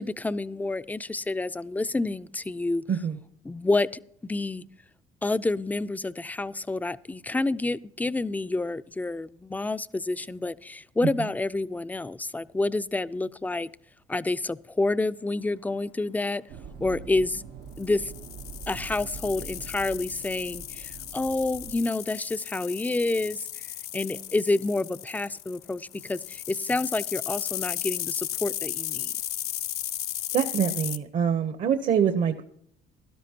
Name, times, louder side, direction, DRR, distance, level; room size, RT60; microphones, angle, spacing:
voice 1, 0.0-2.8 3.4-3.9 4.2-4.6 5.2-13.7 14.1-16.4 16.8-17.4 17.8-18.1 18.7-23.5 23.9-29.1, left 2 dB, 10° left, 0.4 m, -28 dB
voice 2, 2.9-3.2 30.3-32.4, right 7 dB, 55° right, 0.8 m, -25 dB
sound 1, 16.5-21.7, right 6 dB, 90° right, 0.9 m, -43 dB
sound 2, 17.8-31.0, left 12 dB, 70° left, 0.7 m, -35 dB
17.0 x 12.5 x 2.8 m
cardioid pair, 110°, 17 cm